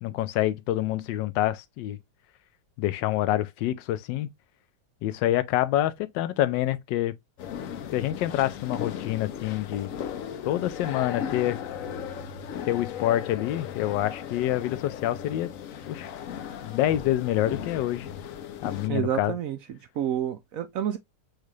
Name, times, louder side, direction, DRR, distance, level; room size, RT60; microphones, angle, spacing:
voice 1, 0.0-2.0 2.8-4.3 5.0-7.1 7.9-9.9 10.5-11.6 12.7-15.5 15.9-16.1 16.6-18.1 18.6-19.3, left 13 dB, 80° left, 1.3 m, -27 dB
sound 1, 7.4-18.9, left 8 dB, 65° left, 0.8 m, -36 dB
voice 2, 18.9-21.0, right 10 dB, 75° right, 0.8 m, -29 dB
6.4 x 2.4 x 3.1 m
omnidirectional pair, 1.9 m